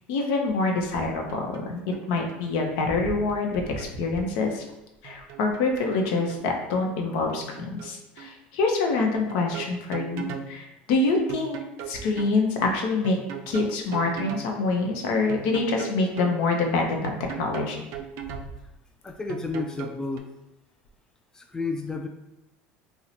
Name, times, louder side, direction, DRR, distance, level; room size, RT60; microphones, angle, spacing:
voice 1, 0.1-1.8 2.1-4.6 5.0-11.6 11.9-13.2 13.5-17.8, left 3 dB, 75° left, 2 dB, 0.7 m, -26 dB
sound 1, 1.0-1.7 1.9-2.5 3.3-4.3 5.0-6.5 7.3-7.9 8.2-8.3 9.0-10.5 11.3-12.4 13.0-14.5 15.3-16.4 17.0-18.5 19.3-20.2, right 9 dB, 65° right, 0.4 m, -38 dB
voice 2, 19.0-20.3 21.3-22.1, left 3 dB, 10° left, 4 dB, 0.3 m, -31 dB
2.8 x 2.1 x 4.0 m, 0.93 s
supercardioid pair, 95°, 5 cm